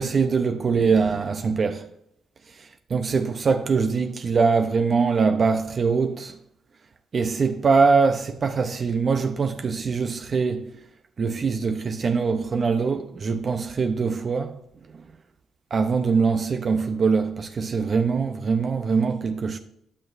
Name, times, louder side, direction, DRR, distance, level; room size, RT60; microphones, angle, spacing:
voice 1, 0.0-1.9 2.9-6.3 7.1-10.7 11.2-14.6 15.7-19.6, right 5 dB, 45° right, 0.6 m, -23 dB
11.5 x 6.1 x 2.6 m
cardioid pair, 90°, 0 cm